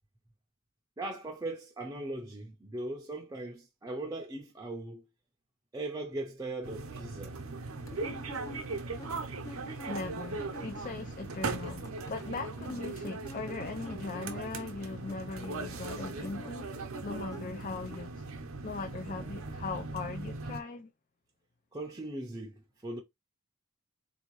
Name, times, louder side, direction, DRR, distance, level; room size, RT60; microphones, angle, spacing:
voice 1, 1.0-5.0 5.7-7.4 21.7-23.0, right 2 dB, 15° right, 0.6 m, -39 dB
sound 1, 6.6-20.6, right 3 dB, 70° right, 0.7 m, -39 dB
sound 2, 7.9-11.0 11.3-18.0, left 3 dB, 15° left, 0.8 m, -49 dB
voice 2, 9.9-16.7 17.0-18.3 18.6-20.9, left 4 dB, 40° left, 0.5 m, -39 dB
4.4 x 2.7 x 3.0 m
head